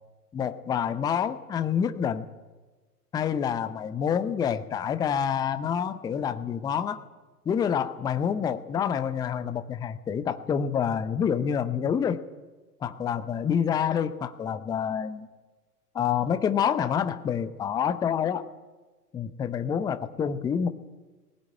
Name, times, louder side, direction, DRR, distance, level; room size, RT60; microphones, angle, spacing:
voice 1, 0.3-2.3 3.1-7.0 7.5-12.2 12.8-15.3 15.9-18.4 19.1-20.7, left 8 dB, 10° left, 11 dB, 0.7 m, -27 dB
20.0 x 17.0 x 9.2 m, 1.3 s
figure-of-eight pair, 110°, 48 cm